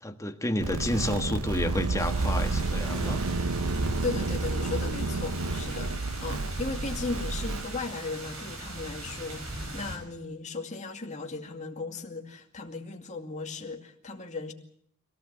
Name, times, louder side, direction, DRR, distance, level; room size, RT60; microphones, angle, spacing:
voice 1, 0.0-3.2, left 1 dB, 15° left, 6 dB, 1.4 m, -30 dB
sound 1, 0.6-7.7, right 3 dB, 90° right, 1.0 m, -30 dB
sound 2, 2.0-10.0, right 1 dB, 70° right, 5.9 m, -39 dB
voice 2, 4.0-14.5, left 3 dB, 35° left, 2 dB, 2.4 m, -36 dB
24.0 x 17.5 x 8.1 m, 0.69 s
head